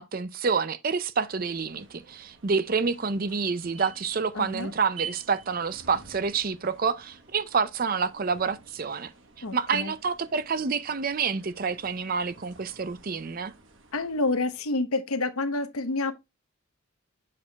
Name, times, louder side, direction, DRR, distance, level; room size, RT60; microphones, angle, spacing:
voice 1, 0.0-9.1 9.4-13.5, right 5 dB, 40° right, 0.5 m, -28 dB
sound 1, 1.2-14.7, right 7 dB, 55° right, 1.2 m, -49 dB
voice 2, 4.3-4.7 9.4-9.9 13.9-16.1, left 2 dB, 75° left, 0.9 m, -28 dB
7.4 x 6.2 x 2.3 m
head